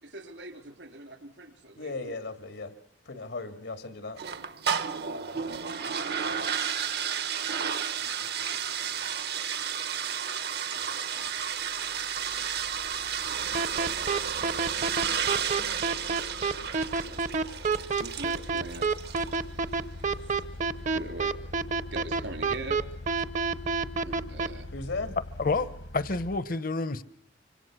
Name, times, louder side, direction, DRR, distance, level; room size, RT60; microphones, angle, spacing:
voice 1, 0.0-2.1 5.8-6.0 8.0-8.9 10.7-11.3 12.3-12.4 17.1-17.2 18.0-18.9 20.9-21.3 21.9-22.8 24.0-24.7, right 1 dB, 75° right, 4.0 m, -43 dB
voice 2, 1.8-2.7 3.1-4.2 24.7-25.1, left 3 dB, 90° left, 2.3 m, -36 dB
sound 1, 4.2-19.4, right 7 dB, 60° right, 1.1 m, -32 dB
sound 2, 10.6-10.7 11.3-26.4, left 2 dB, 70° left, 1.5 m, -44 dB
sound 3, 13.5-24.5, right 4 dB, 40° right, 0.9 m, -27 dB
voice 3, 25.4-27.0, left 3 dB, 50° left, 0.9 m, -29 dB
26.0 x 25.5 x 6.2 m
head